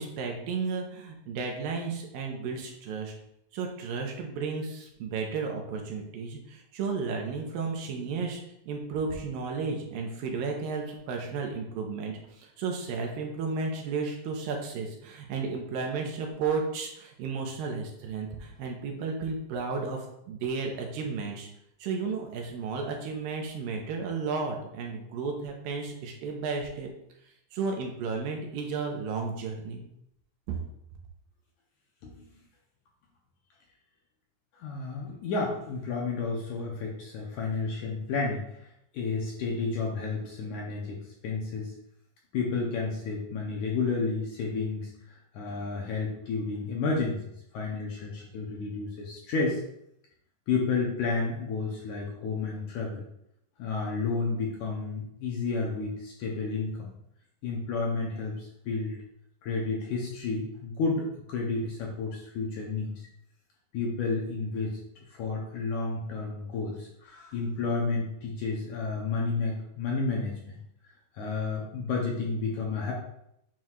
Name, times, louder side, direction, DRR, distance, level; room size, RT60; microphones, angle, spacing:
voice 1, 0.0-3.1 3.5-21.5 21.8-26.9 27.5-29.8, right 4 dB, 80° right, 1 dB, 2.5 m, -33 dB
voice 2, 34.6-38.4 38.9-41.7 42.3-44.9 45.3-47.2 47.5-49.6 50.5-53.0 53.6-56.9 57.4-59.0 59.4-62.9 63.7-70.6 71.1-72.9, left 4 dB, 70° left, -2 dB, 1.9 m, -31 dB
9.1 x 4.6 x 2.4 m, 0.77 s
omnidirectional pair, 4.2 m